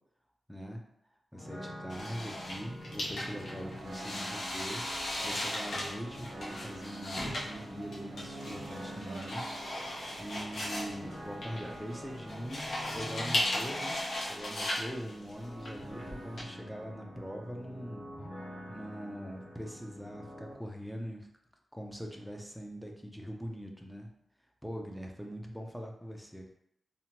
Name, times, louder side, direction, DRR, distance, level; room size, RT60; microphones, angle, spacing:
voice 1, 0.5-0.8 1.3-4.8 5.2-9.5 10.2-14.0 14.3-18.1 18.7-21.3 21.7-24.1 24.6-26.5, equal, ahead, 2 dB, 0.3 m, -42 dB
sound 1, 1.3-20.5, equal, 60° left, 1.0 m, -46 dB
sound 2, 1.9-16.4, left 1 dB, 80° left, 0.7 m, -37 dB
sound 3, 2.9-13.3, right 3 dB, 70° right, 0.3 m, -51 dB
2.8 x 2.1 x 2.8 m, 0.76 s
wide cardioid pair, 155°, 0 cm